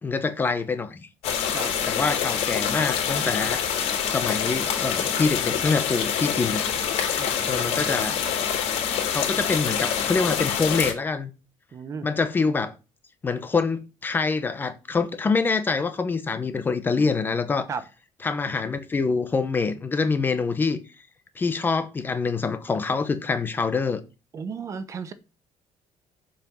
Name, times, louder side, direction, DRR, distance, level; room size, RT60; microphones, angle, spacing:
voice 1, 0.0-1.1 1.9-3.6 4.0-6.6 7.5-8.2 9.1-11.3 12.0-12.7 13.2-17.7 18.2-20.8 21.4-24.0, left 4 dB, 20° left, 0.8 m, -25 dB
sound 1, 1.2-10.9, left 8 dB, 70° left, 3.5 m, -26 dB
voice 2, 7.1-8.0 11.7-12.1 17.7-17.8 24.3-25.1, right 5 dB, 30° right, 0.8 m, -35 dB
7.5 x 5.8 x 6.9 m
cardioid pair, 180°, 11 cm